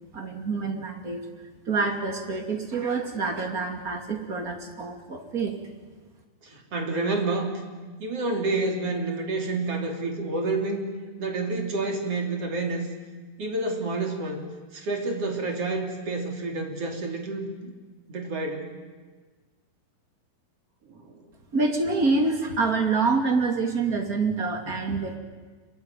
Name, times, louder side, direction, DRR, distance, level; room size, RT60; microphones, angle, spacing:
voice 1, 0.1-1.2 1.7-5.6 21.5-25.2, right 4 dB, 25° right, 4 dB, 2.8 m, -26 dB
voice 2, 6.4-7.5 8.0-10.9 11.2-12.9 13.4-14.4 14.7-17.7 18.1-18.7 20.9-21.2, right 3 dB, 45° right, 2 dB, 4.2 m, -29 dB
26.5 x 23.5 x 9.3 m, 1.4 s
omnidirectional pair, 4.0 m